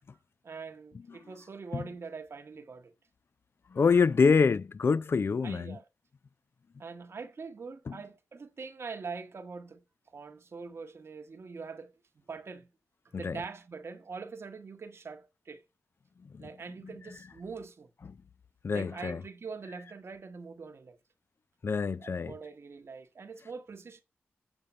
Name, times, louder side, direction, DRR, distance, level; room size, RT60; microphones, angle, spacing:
voice 1, 0.4-2.9 5.4-5.8 6.8-9.8 10.1-11.9 12.3-12.7 13.2-15.6 16.4-17.9 18.7-21.0 22.0-24.0, right 4 dB, 60° right, 0.9 m, -43 dB
voice 2, 3.7-5.8 7.9-8.0 13.2-13.4 16.3-16.5 18.6-19.2 21.6-22.3, left 5 dB, 55° left, 0.4 m, -26 dB
7.1 x 5.1 x 5.3 m
cardioid pair, 40°, 5 cm